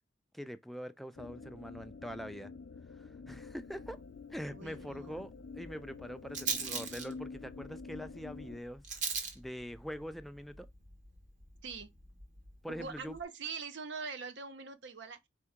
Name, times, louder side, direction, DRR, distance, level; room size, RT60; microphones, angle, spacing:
voice 1, 0.3-2.5 3.0-4.0 4.3-8.8 9.1-10.7 12.6-13.2, equal, ahead, 0.3 m, -44 dB
sound 1, 1.1-8.6, left 4 dB, 65° left, 0.5 m, -48 dB
Rattle, 3.3-13.2, right 5 dB, 40° right, 1.0 m, -43 dB
voice 2, 4.5-5.3 11.6-11.9 12.7-15.3, right 5 dB, 70° right, 0.7 m, -43 dB
4.3 x 2.8 x 3.5 m
head